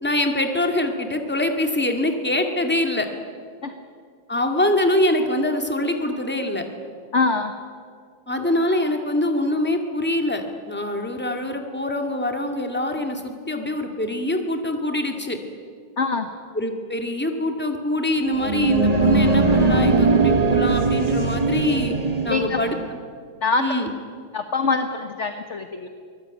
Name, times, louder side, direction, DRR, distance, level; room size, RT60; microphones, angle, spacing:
voice 1, 0.0-3.1 4.3-6.6 8.3-15.4 16.5-21.9 22.2-23.0 23.6-23.9, left 1 dB, 5° left, 4 dB, 2.0 m, -24 dB
voice 2, 7.1-7.5 16.0-16.3 22.3-22.6 23.4-23.7 24.3-25.9, left 4 dB, 40° left, 7 dB, 1.3 m, -23 dB
sound 1, 18.2-22.8, right 3 dB, 25° right, 0.9 m, -20 dB
23.5 x 20.5 x 9.0 m, 2.1 s
omnidirectional pair, 2.2 m